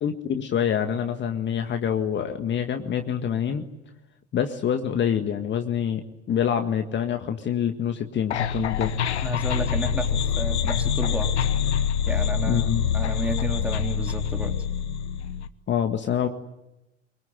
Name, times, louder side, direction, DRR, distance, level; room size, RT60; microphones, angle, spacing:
voice 1, 0.0-3.6 4.3-8.9 12.1-12.2 12.5-12.9 15.7-16.3, left 8 dB, 30° left, 6 dB, 1.8 m, -26 dB
sound 1, 8.3-15.5, left 8 dB, 70° left, 1.2 m, -25 dB
voice 2, 9.2-11.3 12.1-14.5, right 2 dB, 5° right, 4 dB, 3.3 m, -32 dB
24.5 x 24.0 x 9.6 m, 0.92 s
figure-of-eight pair, 70°, 34 cm